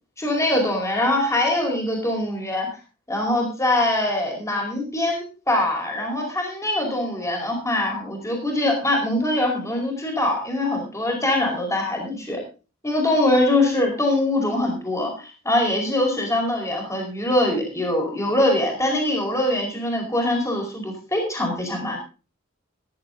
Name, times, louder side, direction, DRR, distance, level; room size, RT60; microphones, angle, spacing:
voice 1, 0.2-2.7 3.1-12.4 12.8-22.0, left 1 dB, 15° left, 1 dB, 4.8 m, -23 dB
18.5 x 11.0 x 3.9 m, 0.34 s
head